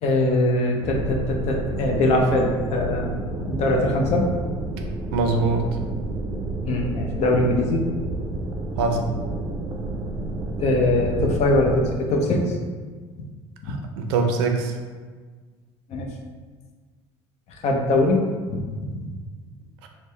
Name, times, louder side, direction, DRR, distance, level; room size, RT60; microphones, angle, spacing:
voice 1, 0.0-3.1 3.5-4.3 6.7-7.8 10.6-12.4 13.6-13.8 15.9-16.1 17.6-18.2 18.5-19.1, left 2 dB, 60° left, 1 dB, 0.7 m, -22 dB
sound 1, 0.8-11.9, right 2 dB, 30° right, 0.5 m, -30 dB
voice 2, 5.1-5.7 8.8-9.0 13.7-14.7 19.8-19.9, right 4 dB, 85° right, 4 dB, 0.5 m, -23 dB
4.2 x 2.1 x 3.2 m, 1.5 s
supercardioid pair, 85°, 13 cm